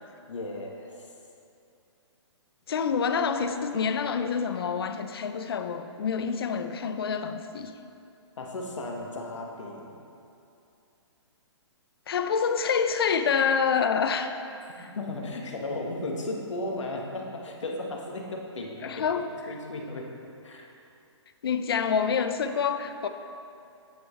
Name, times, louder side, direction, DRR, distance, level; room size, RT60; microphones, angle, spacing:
voice 1, 0.3-1.1 8.4-9.9 14.9-20.1 20.4-20.7, left 2 dB, 85° left, 0 dB, 1.5 m, -35 dB
voice 2, 2.7-7.7 12.1-14.3 14.8-14.9 18.8-19.3 21.4-23.1, left 6 dB, 55° left, 9 dB, 0.5 m, -27 dB
8.9 x 8.2 x 3.2 m, 2.7 s
hypercardioid pair, 165°, 15 cm